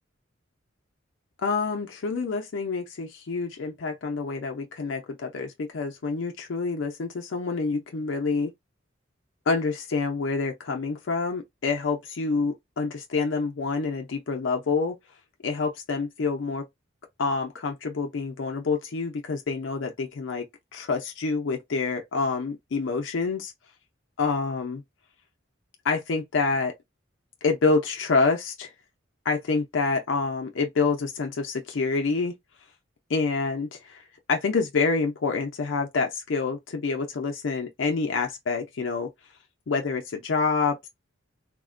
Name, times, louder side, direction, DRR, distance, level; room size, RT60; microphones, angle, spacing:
voice 1, 1.4-8.5 9.5-15.0 15.4-16.7 17.2-20.5 20.7-23.5 24.2-24.8 25.8-26.7 27.4-28.7 29.3-32.3 33.1-34.0 34.3-39.1 39.7-40.9, left 4 dB, 70° left, 0.5 m, -27 dB
3.5 x 2.1 x 2.4 m
head